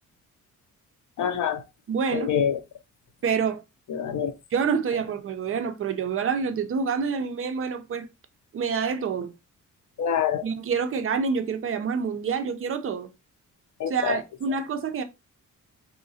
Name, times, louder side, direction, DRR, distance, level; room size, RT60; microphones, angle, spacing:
voice 1, 1.2-1.6 2.1-2.6 3.9-4.3 10.0-10.4 13.8-14.2, left 8 dB, 70° left, 0.6 m, -25 dB
voice 2, 1.9-2.4 3.2-3.6 4.5-8.1 8.5-9.3 10.4-13.1 13.9-15.0, right 6 dB, 45° right, 0.5 m, -27 dB
3.7 x 3.1 x 2.7 m
wide cardioid pair, 150°, 31 cm